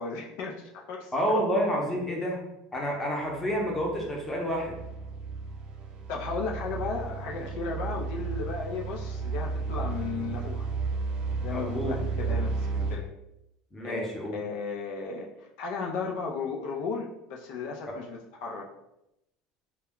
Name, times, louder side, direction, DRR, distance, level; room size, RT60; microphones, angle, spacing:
voice 1, 0.0-1.1 6.1-10.7 11.4-13.1 13.8-14.1 14.3-18.7, left 4 dB, 65° left, 0 dB, 0.4 m, -35 dB
voice 2, 1.1-2.4 2.7-4.8 11.5-12.0 13.7-14.3 17.9-18.0, equal, 10° left, -2 dB, 0.7 m, -29 dB
sound 1, 3.3-13.0, right 4 dB, 40° right, 0.4 m, -33 dB
2.2 x 2.1 x 3.5 m, 0.86 s
supercardioid pair, 130°, 2 cm